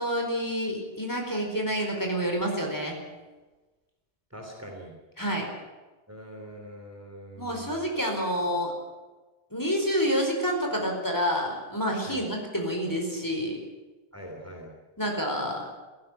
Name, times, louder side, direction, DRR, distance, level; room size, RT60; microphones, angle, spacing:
voice 1, 0.0-3.0 5.2-5.5 7.4-8.7 9.5-13.6 15.0-15.7, equal, 20° left, 1 dB, 4.6 m, -28 dB
voice 2, 4.3-4.9 6.1-7.9 12.0-12.3 14.1-14.7, equal, 15° right, 1 dB, 3.2 m, -43 dB
17.5 x 16.0 x 10.0 m, 1.2 s
omnidirectional pair, 1.1 m